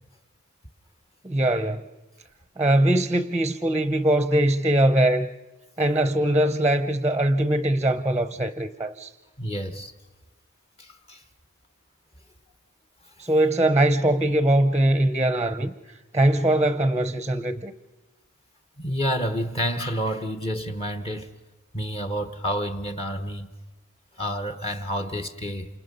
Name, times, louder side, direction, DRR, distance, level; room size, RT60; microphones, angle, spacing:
voice 1, 1.2-1.8 2.6-5.3 5.8-9.1 13.2-15.7 16.1-17.7, right 1 dB, 15° right, 0.7 m, -21 dB
voice 2, 9.4-9.9 10.8-11.2 18.8-21.3 21.7-23.5 24.2-25.7, equal, 25° left, 1.1 m, -29 dB
29.0 x 27.5 x 5.5 m
head